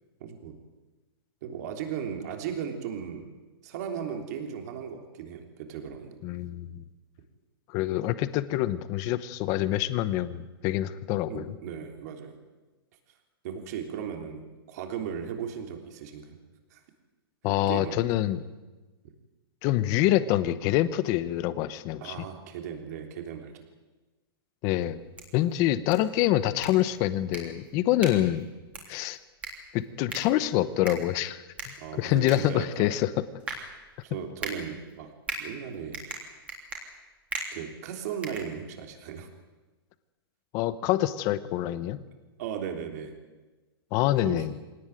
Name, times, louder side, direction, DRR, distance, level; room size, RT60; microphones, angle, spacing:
voice 1, 0.2-0.6 1.4-3.3 3.6-6.2 11.3-12.4 13.4-16.4 16.7-16.8 17.7-18.1 22.0-23.6 31.8-32.9 34.0-35.1 35.4-36.0 37.5-39.3 42.4-43.2 44.2-44.5, right 8 dB, 40° right, 5 dB, 3.3 m, -36 dB
voice 2, 6.2-6.8 7.7-11.6 17.4-18.4 19.6-22.1 24.6-25.0 25.3-28.5 28.9-29.2 29.7-31.4 31.6-33.1 40.5-42.0 43.9-44.5, left 14 dB, 25° left, 15 dB, 0.9 m, -26 dB
sound 1, 24.9-39.1, right 3 dB, 10° right, 3.4 m, -42 dB
24.0 x 18.0 x 9.2 m, 1.2 s
hypercardioid pair, 170°, 13 cm